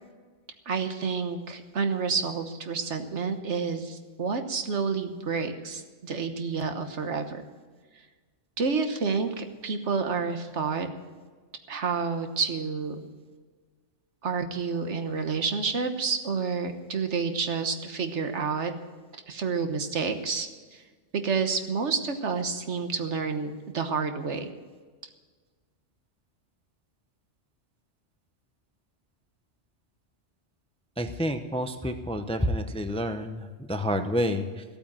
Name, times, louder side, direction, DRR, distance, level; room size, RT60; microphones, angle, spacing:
voice 1, 0.7-7.4 8.6-10.9 11.7-13.0 14.2-18.7 19.3-20.8 21.1-24.5, right 5 dB, 70° right, 7 dB, 1.5 m, -29 dB
voice 2, 31.0-34.6, equal, 5° left, 8 dB, 0.6 m, -29 dB
15.0 x 8.8 x 7.4 m, 1.4 s
omnidirectional pair, 1.2 m